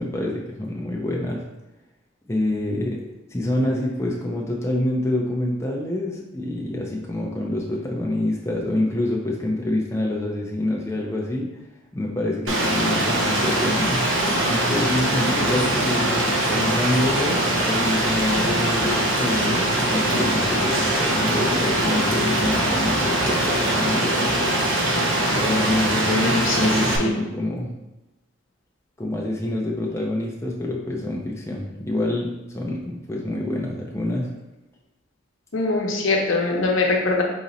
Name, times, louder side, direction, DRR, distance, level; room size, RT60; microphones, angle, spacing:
voice 1, 0.0-1.4 2.3-3.0 3.3-11.6 11.9-14.0 14.5-24.4 25.3-27.7 29.0-34.3, left 1 dB, 15° left, -2 dB, 0.4 m, -26 dB
Rain, 12.5-27.0, right 1 dB, 75° right, 0.8 m, -22 dB
voice 2, 26.1-27.1 35.5-37.2, left 3 dB, 75° left, 0 dB, 0.8 m, -23 dB
4.0 x 2.9 x 4.0 m, 1.0 s
head